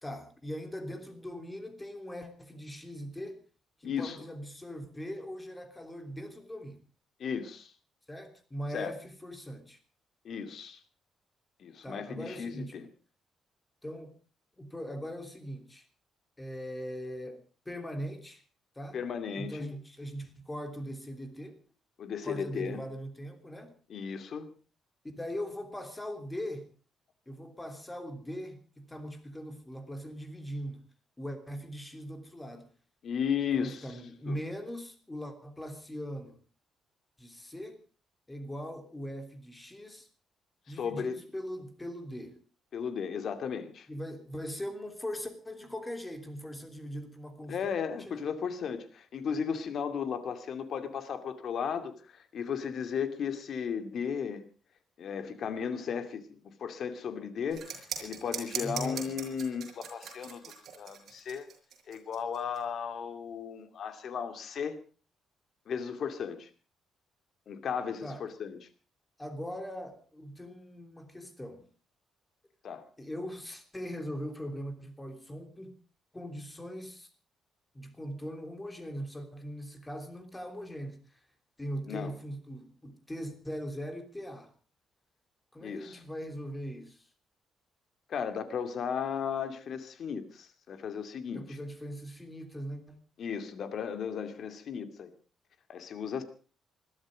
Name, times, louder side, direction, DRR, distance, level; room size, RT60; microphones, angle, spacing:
voice 1, 0.0-3.4 3.8-6.8 8.1-9.8 11.8-12.8 13.8-14.1 14.6-15.9 16.4-18.4 18.7-19.0 19.4-21.6 22.2-23.7 25.2-26.7 27.3-30.9 31.2-32.7 33.5-36.4 37.2-37.8 38.3-40.1 40.7-42.4 43.9-48.2 58.6-59.1 68.0-68.2 69.2-71.6 73.0-75.7 76.1-77.1 77.7-81.2 81.6-84.5 85.5-87.1 91.3-93.0, equal, 10° left, 7 dB, 3.1 m, -40 dB
voice 2, 3.8-4.2 7.2-7.7 8.7-8.9 10.2-10.8 11.6-12.9 18.9-19.7 22.0-22.8 23.9-24.5 33.0-33.9 34.3-34.4 40.8-41.2 42.7-43.9 47.5-54.4 55.0-60.4 60.8-61.5 61.9-64.8 65.7-66.5 67.5-68.6 72.6-72.9 81.9-82.1 85.6-86.0 88.1-91.6 93.2-95.1 95.7-96.2, left 7 dB, 55° left, 9 dB, 2.5 m, -35 dB
sound 1, 57.5-62.6, right 7 dB, 55° right, 6.1 m, -40 dB
21.0 x 13.0 x 5.1 m, 0.37 s
cardioid pair, 130°, 0 cm